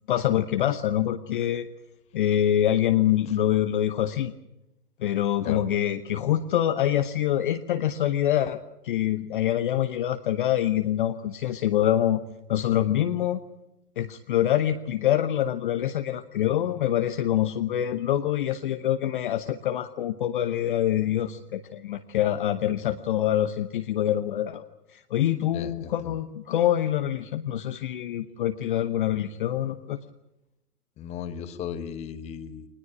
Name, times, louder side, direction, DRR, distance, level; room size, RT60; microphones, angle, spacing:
voice 1, 0.1-1.7 2.1-4.3 5.0-12.2 12.5-13.4 14.0-24.6 24.9-30.0, left 11 dB, 35° left, 10 dB, 0.9 m, -25 dB
voice 2, 25.5-26.2 31.0-32.7, left 8 dB, 15° left, 11 dB, 1.2 m, -36 dB
22.5 x 20.0 x 9.8 m, 0.92 s
figure-of-eight pair, 135°, 47 cm